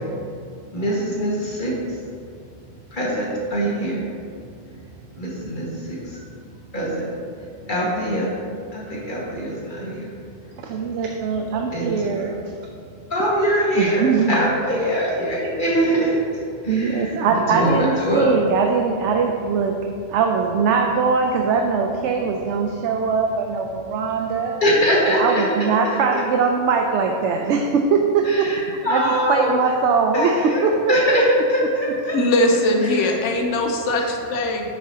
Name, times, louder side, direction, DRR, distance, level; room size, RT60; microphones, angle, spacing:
voice 1, 0.7-1.7 2.9-4.0 5.2-6.0 6.7-7.0 7.7-8.3 8.7-10.1 11.7-12.3 13.1-16.1 16.6-18.3 24.6-25.4 26.1-26.2 28.2-29.5 30.1-30.6 30.9-32.1 32.8-33.0, equal, 40° left, -5 dB, 1.8 m, -22 dB
voice 2, 10.7-12.4 13.7-14.5 16.7-19.8 20.1-24.5 25.1-31.2 33.3-33.4, right 5 dB, 70° right, 2 dB, 0.9 m, -21 dB
voice 3, 32.1-34.7, left 1 dB, 70° left, 2 dB, 1.1 m, -20 dB
9.9 x 6.6 x 2.8 m, 2.3 s
omnidirectional pair, 1.3 m